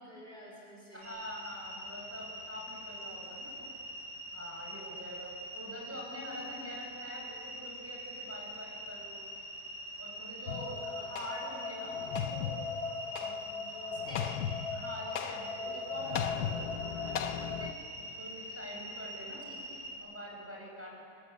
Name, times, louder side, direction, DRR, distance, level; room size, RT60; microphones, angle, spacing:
voice 1, 0.0-1.1 10.6-11.1 14.1-14.5 19.4-19.9, equal, 30° left, -3 dB, 5.3 m, -50 dB
voice 2, 0.9-3.7 4.3-9.2 10.0-12.6 13.1-14.1 14.7-16.6 17.4-19.4 20.0-21.0, equal, 5° right, -4 dB, 7.9 m, -45 dB
sound 1, 1.0-19.9, right 1 dB, 45° right, 8.0 m, -44 dB
sound 2, 10.5-17.7, left 7 dB, 70° left, 1.4 m, -37 dB
27.0 x 26.0 x 8.5 m, 2.4 s
omnidirectional pair, 1.8 m